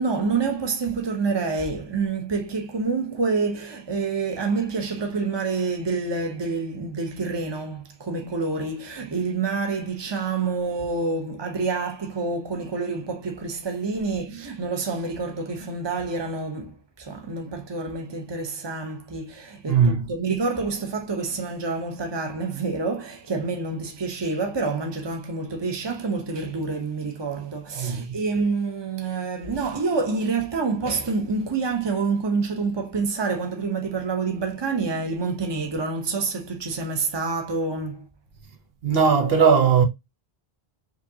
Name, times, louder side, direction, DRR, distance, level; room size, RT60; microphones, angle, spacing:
voice 1, 0.0-38.0, right 4 dB, 25° right, 0.9 m, -27 dB
voice 2, 19.7-20.1 27.8-28.2 38.8-39.8, right 6 dB, 70° right, 1.1 m, -19 dB
5.0 x 2.8 x 2.7 m
omnidirectional pair, 1.1 m